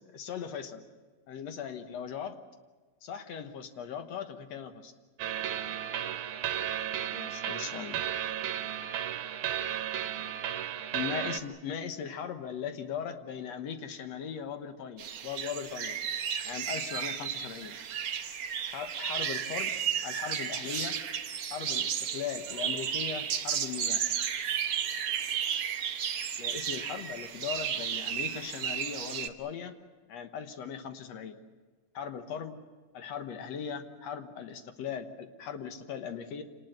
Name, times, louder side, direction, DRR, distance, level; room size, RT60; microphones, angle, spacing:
voice 1, 0.1-0.8 1.3-2.4 3.0-4.9 7.1-8.1 10.9-16.0 16.4-17.8 18.7-19.7 20.0-21.0 21.5-24.0 26.4-29.7 30.1-31.4 31.9-32.6 32.9-36.4, left 7 dB, 65° left, 8 dB, 2.2 m, -39 dB
sound 1, 5.2-11.4, right 10 dB, 75° right, 2.5 m, -34 dB
sound 2, 15.0-29.3, right 8 dB, 60° right, 1.5 m, -33 dB
26.5 x 19.0 x 8.0 m, 1.3 s
omnidirectional pair, 3.6 m